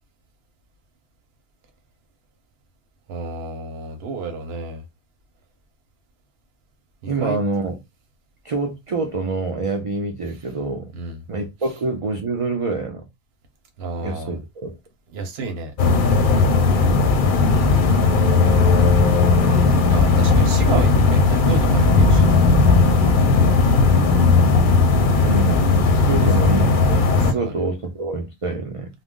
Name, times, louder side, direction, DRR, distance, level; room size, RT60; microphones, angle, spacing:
voice 1, 3.1-4.8 7.0-7.4 10.9-11.2 13.8-14.4 15.1-15.7 19.8-22.4 26.1-26.3 27.2-27.6, right 4 dB, 85° right, 0.9 m, -31 dB
voice 2, 7.1-7.8 8.4-10.9 11.3-13.1 14.0-14.8 16.7-17.1 25.2-25.7 26.0-28.9, right 3 dB, 50° right, 0.4 m, -26 dB
sound 1, 15.8-27.3, left 3 dB, 60° left, 0.7 m, -16 dB
2.4 x 2.0 x 3.5 m
omnidirectional pair, 1.0 m